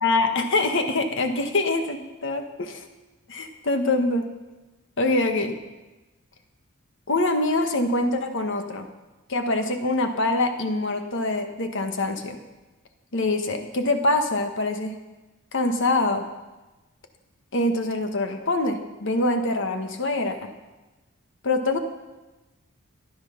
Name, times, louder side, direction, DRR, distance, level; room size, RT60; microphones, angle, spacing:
voice 1, 0.0-2.8 3.3-4.3 5.0-5.6 7.1-8.9 9.3-12.4 13.1-14.9 15.5-16.2 17.5-20.5 21.4-21.8, left 2 dB, 60° left, 6 dB, 1.4 m, -24 dB
14.5 x 11.0 x 5.9 m, 1.1 s
head